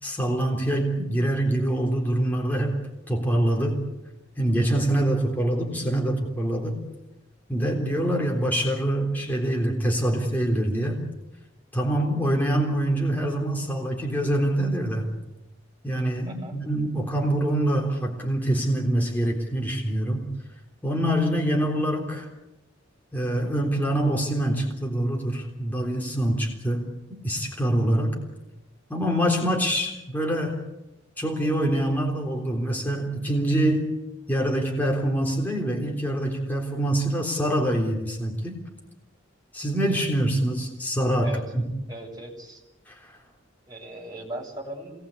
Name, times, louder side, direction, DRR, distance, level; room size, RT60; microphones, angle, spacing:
voice 1, 0.0-2.8 3.1-3.8 4.4-6.8 7.5-11.0 11.7-15.1 15.8-20.2 20.8-22.3 23.1-28.2 28.9-30.6 31.2-33.9 34.3-38.6 39.5-41.7 42.9-43.1, right 1 dB, 10° left, -1 dB, 3.7 m, -25 dB
voice 2, 16.3-16.6 41.2-41.5 41.9-42.6 43.7-44.9, right 1 dB, 20° right, -2 dB, 7.1 m, -38 dB
27.0 x 20.0 x 8.5 m, 0.97 s
head